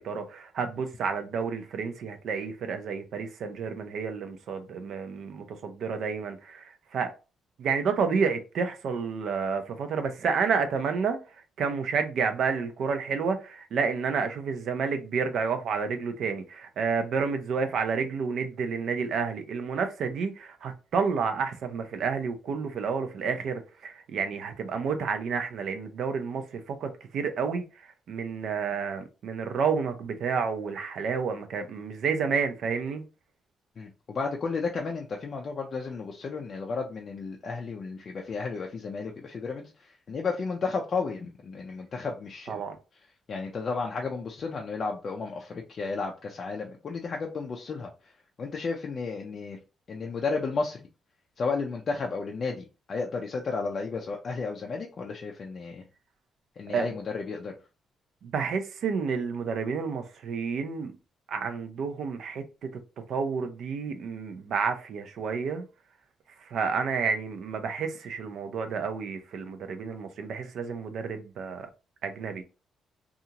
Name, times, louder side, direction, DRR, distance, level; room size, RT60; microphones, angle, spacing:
voice 1, 0.0-7.1 7.6-11.2 11.6-27.6 28.1-33.0 42.5-42.8 56.7-56.9 58.2-60.9 61.3-62.7 63.1-65.6 66.5-71.7 72.0-72.4, right 5 dB, 65° right, 0.5 m, -30 dB
voice 2, 33.8-42.6 43.3-48.1 48.4-49.6 49.9-50.9 51.4-55.9 56.6-57.6, left 4 dB, 40° left, 0.4 m, -33 dB
2.8 x 2.4 x 2.8 m
cardioid pair, 145°, 0 cm